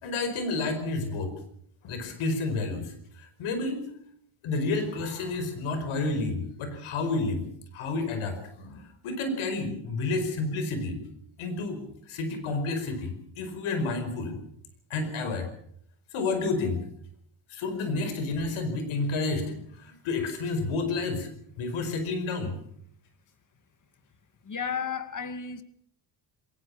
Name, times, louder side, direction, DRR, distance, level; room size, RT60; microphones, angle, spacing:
voice 1, 0.0-1.3 1.8-3.9 4.4-7.5 7.7-11.0 11.4-14.4 14.9-15.5 16.1-16.8 17.5-21.3 21.6-22.6, left 3 dB, 85° left, 5.1 m, -30 dB
voice 2, 24.4-25.6, left 6 dB, 40° left, 2.4 m, -33 dB
21.5 x 18.5 x 7.2 m
cardioid pair, 80°, 48 cm